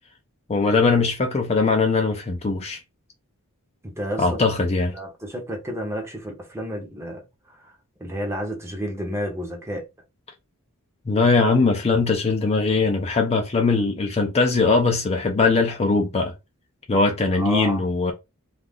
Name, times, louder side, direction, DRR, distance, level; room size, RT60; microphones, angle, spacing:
voice 1, 0.5-2.8 4.2-4.9 11.1-16.3 16.9-18.1, left 3 dB, 30° left, 0.5 m, -20 dB
voice 2, 3.8-4.4 4.9-7.2 7.6-7.7 8.0-9.9 17.4-17.9, equal, 10° right, 0.8 m, -31 dB
2.4 x 2.4 x 3.5 m
head